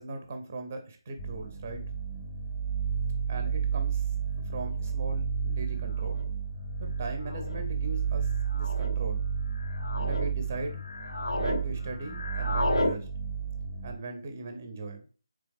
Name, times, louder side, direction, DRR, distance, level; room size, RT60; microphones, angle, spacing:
voice 1, 0.0-1.8 3.3-4.1 4.5-6.3 6.8-9.2 10.0-10.8 11.3-13.1 13.8-15.0, right 2 dB, 20° right, 5 dB, 0.5 m, -39 dB
sound 1, 1.2-13.9, right 6 dB, 35° left, 0.6 m, -32 dB
sound 2, 4.9-5.0 6.0-6.3 7.2-7.6 8.5-8.9 9.5-10.3 10.7-11.6 11.9-13.0, left 1 dB, 85° left, 0.6 m, -32 dB
3.9 x 3.3 x 3.5 m, 0.38 s
figure-of-eight pair, 175°, 3 cm